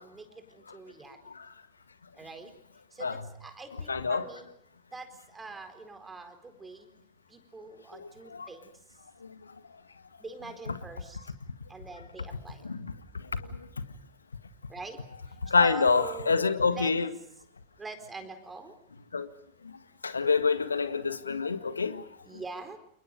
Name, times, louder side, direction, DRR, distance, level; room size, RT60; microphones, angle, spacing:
voice 1, 0.0-1.2 2.2-2.5 2.9-4.5 4.9-6.9 7.3-8.7 10.2-11.3 11.7-12.6 14.7-15.0 15.6-16.5 16.8-16.9 17.8-18.7 22.2-22.8, right 3 dB, 15° right, 4.2 m, -43 dB
voice 2, 3.9-4.3 7.9-8.5 10.7-10.8 12.6-12.9 15.4-17.1 19.1-19.3 19.6-19.7 20.0-22.0, left 4 dB, 75° left, 1.8 m, -27 dB
29.5 x 28.5 x 5.3 m
figure-of-eight pair, 90°, 0 cm